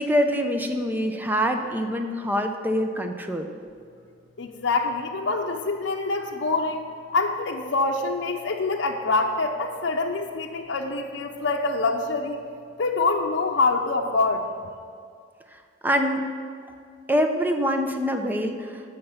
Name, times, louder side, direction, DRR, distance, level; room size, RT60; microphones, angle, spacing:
voice 1, 0.0-3.5 15.8-16.2 17.1-18.8, equal, 10° right, 5 dB, 0.7 m, -25 dB
voice 2, 4.4-6.8 7.1-12.4 12.8-14.5, left 3 dB, 75° left, 1 dB, 0.7 m, -25 dB
13.5 x 5.8 x 5.7 m, 2.2 s
head